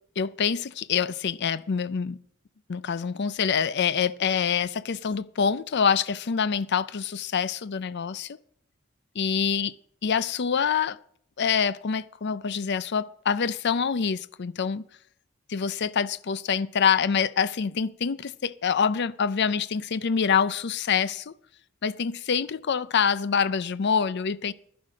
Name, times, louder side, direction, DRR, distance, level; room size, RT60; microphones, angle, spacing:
voice 1, 0.2-2.2 2.7-8.4 9.2-9.7 10.0-11.0 11.4-14.8 15.5-21.3 21.8-24.5, left 6 dB, 55° left, 0.5 m, -26 dB
11.5 x 11.5 x 5.1 m
head